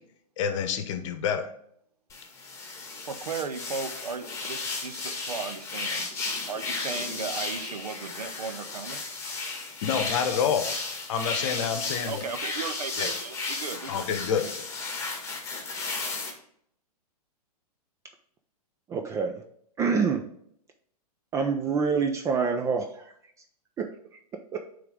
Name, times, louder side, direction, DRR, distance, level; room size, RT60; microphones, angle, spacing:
voice 1, 0.4-1.5 9.8-10.7 11.1-12.2 13.0-13.1 13.9-14.7, left 7 dB, 50° left, 8 dB, 0.9 m, -28 dB
sound 1, 2.1-16.3, left 3 dB, 15° left, 1.4 m, -34 dB
voice 2, 3.0-6.1 6.5-9.0 12.1-14.2, right 5 dB, 75° right, 10 dB, 0.7 m, -36 dB
voice 3, 18.9-19.4 19.8-20.2 21.3-23.1 23.8-23.9 24.5-24.6, right 5 dB, 15° right, 5 dB, 0.4 m, -26 dB
8.9 x 3.5 x 3.6 m, 0.68 s
figure-of-eight pair, 110°, 20 cm